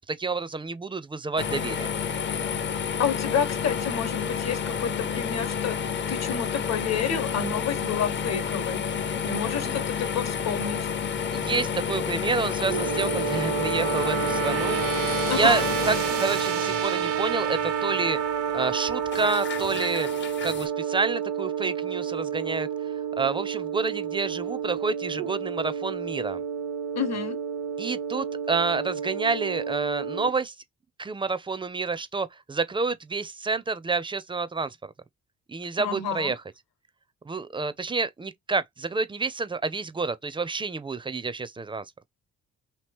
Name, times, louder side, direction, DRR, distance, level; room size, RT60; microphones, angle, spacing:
voice 1, 0.1-1.9 9.6-9.8 11.3-14.8 15.3-18.2 18.5-20.1 20.4-22.7 23.1-26.4 27.8-30.5 31.0-34.8 35.5-36.4 37.2-41.8, right 4 dB, 15° right, 0.4 m, -29 dB
sound 1, 1.4-20.7, left 7 dB, 40° left, 0.5 m, -30 dB
voice 2, 3.0-8.8 9.2-10.8 15.3-15.7 26.9-27.4 35.8-36.3, left 7 dB, 60° left, 1.1 m, -29 dB
sound 2, 12.6-30.3, right 8 dB, 75° right, 0.7 m, -29 dB
2.9 x 2.9 x 3.4 m
cardioid pair, 90°, 30 cm